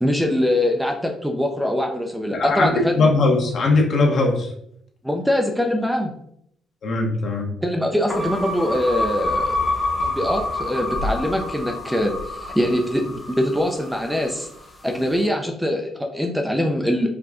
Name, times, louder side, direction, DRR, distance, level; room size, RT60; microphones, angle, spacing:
voice 1, 0.0-3.0 5.0-6.1 7.6-9.6 10.0-14.5 14.8-17.1, left 1 dB, 5° right, 3 dB, 0.6 m, -23 dB
voice 2, 2.3-2.7 3.0-4.5 6.8-7.5, left 3 dB, 60° left, 0 dB, 1.2 m, -19 dB
sound 1, 8.1-14.4, left 2 dB, 25° left, 1.0 m, -27 dB
4.7 x 2.4 x 3.7 m, 0.70 s
cardioid pair, 90°, 0 cm